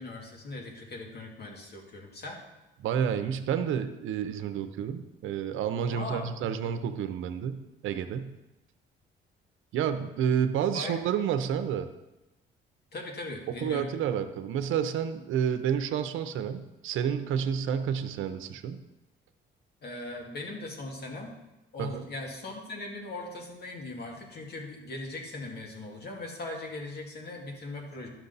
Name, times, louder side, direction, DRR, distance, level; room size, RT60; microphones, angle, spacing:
voice 1, 0.0-2.4 5.9-6.3 10.7-10.9 12.9-13.8 19.8-21.3 21.7-28.1, left 2 dB, 55° left, 1 dB, 2.0 m, -39 dB
voice 2, 2.8-8.3 9.7-11.9 13.6-18.8 21.8-22.0, right 8 dB, 80° right, 9 dB, 0.7 m, -30 dB
11.5 x 6.0 x 4.0 m, 0.99 s
cardioid pair, 90°, 20 cm